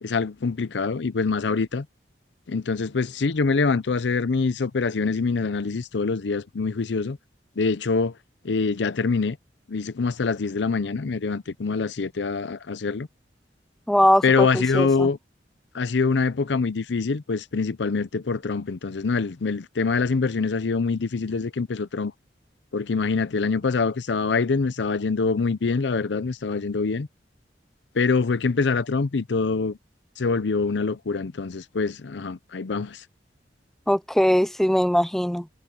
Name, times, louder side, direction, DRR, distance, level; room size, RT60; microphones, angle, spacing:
voice 1, 0.0-1.9 2.5-7.2 7.6-8.1 8.4-9.4 9.7-13.1 14.2-15.2 15.7-22.1 22.7-27.1 28.0-29.8 30.2-33.0, left 4 dB, 75° left, 0.6 m, -25 dB
voice 2, 13.9-15.1 33.9-35.5, equal, ahead, 0.3 m, -21 dB
head